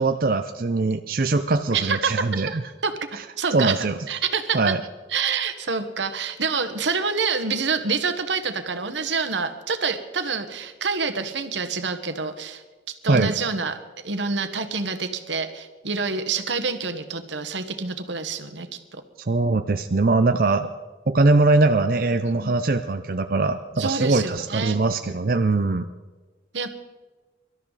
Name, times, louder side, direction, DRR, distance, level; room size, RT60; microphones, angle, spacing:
voice 1, 0.0-2.6 3.5-4.0 4.5-4.8 13.1-13.3 19.3-20.7 21.1-25.9, right 3 dB, 50° right, 7 dB, 0.6 m, -21 dB
voice 2, 1.7-2.1 2.8-2.9 3.4-4.7 5.1-13.8 14.0-19.0 22.2-22.5 23.8-24.8 26.5-26.7, right 5 dB, 80° right, 9 dB, 1.4 m, -27 dB
24.0 x 12.5 x 4.1 m, 1.3 s
head